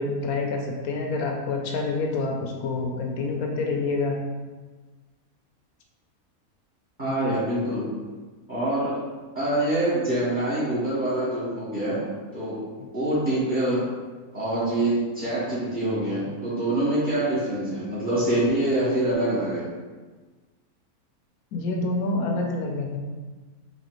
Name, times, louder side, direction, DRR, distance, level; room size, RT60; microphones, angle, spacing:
voice 1, 0.0-4.2 7.0-7.1 12.8-12.9 21.5-23.0, left 3 dB, 75° left, 1 dB, 1.0 m, -27 dB
voice 2, 7.0-7.9 8.5-9.0 9.3-12.0 12.3-12.6 12.9-13.9 14.3-19.7, right 1 dB, 35° right, -12 dB, 1.2 m, -25 dB
4.1 x 2.8 x 2.9 m, 1.3 s
omnidirectional pair, 1.6 m